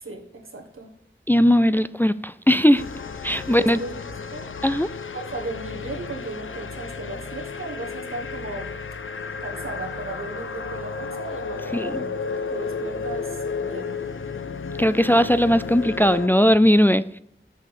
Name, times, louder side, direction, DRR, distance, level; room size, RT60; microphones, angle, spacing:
voice 1, 0.0-0.9 3.3-4.5 5.1-8.7 9.4-14.0, right 2 dB, 90° right, 1.5 m, -36 dB
voice 2, 1.3-2.8 3.2-3.8 4.6-4.9 11.7-12.0 14.8-17.0, equal, 10° left, 0.3 m, -18 dB
sound 1, 2.8-16.3, left 5 dB, 75° left, 0.6 m, -33 dB
6.5 x 6.4 x 5.2 m
wide cardioid pair, 50°, 21 cm